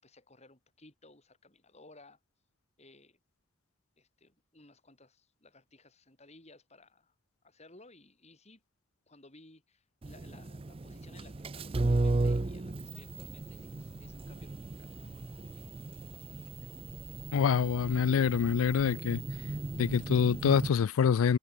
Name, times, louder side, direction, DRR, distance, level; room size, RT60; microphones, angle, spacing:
voice 1, 0.0-2.2 2.8-3.2 4.0-7.1 7.4-8.6 9.1-15.6 16.0-16.4, left 2 dB, 30° left, 4.3 m, -58 dB
sound 1, 10.0-20.7, right 2 dB, 25° right, 0.5 m, -35 dB
voice 2, 17.3-19.2 19.7-21.4, left 7 dB, 90° left, 0.4 m, -26 dB
head